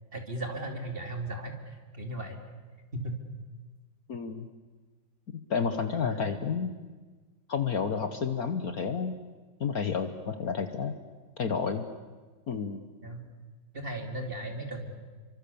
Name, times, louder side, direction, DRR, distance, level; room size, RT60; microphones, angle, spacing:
voice 1, 0.1-2.4 2.9-3.2 6.0-6.3 13.0-13.2 13.7-14.9, right 1 dB, 25° right, 4 dB, 2.8 m, -36 dB
voice 2, 4.1-4.5 5.5-6.7 7.5-9.2 9.6-10.9 11.4-11.9 12.5-12.8, left 6 dB, 50° left, 8 dB, 1.5 m, -30 dB
29.5 x 24.5 x 7.0 m, 1.4 s
omnidirectional pair, 2.1 m